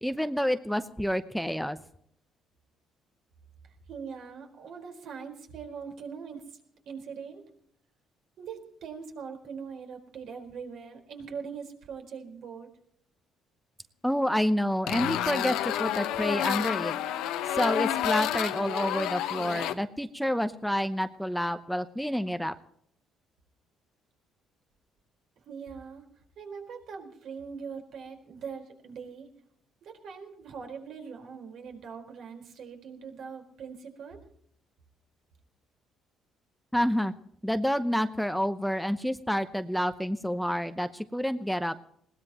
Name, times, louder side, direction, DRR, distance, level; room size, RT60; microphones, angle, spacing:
voice 1, 0.0-1.8 14.0-16.9 17.5-22.5 36.7-37.1 37.4-41.7, equal, ahead, 10 dB, 0.8 m, -28 dB
voice 2, 3.6-6.6 6.9-7.5 8.4-12.7 25.5-26.1 26.4-29.3 29.8-34.2, right 6 dB, 65° right, 3 dB, 4.4 m, -42 dB
sound 1, 14.9-19.7, left 12 dB, 90° left, 1.1 m, -29 dB
21.0 x 18.0 x 3.0 m, 0.69 s
cardioid pair, 110°, 0 cm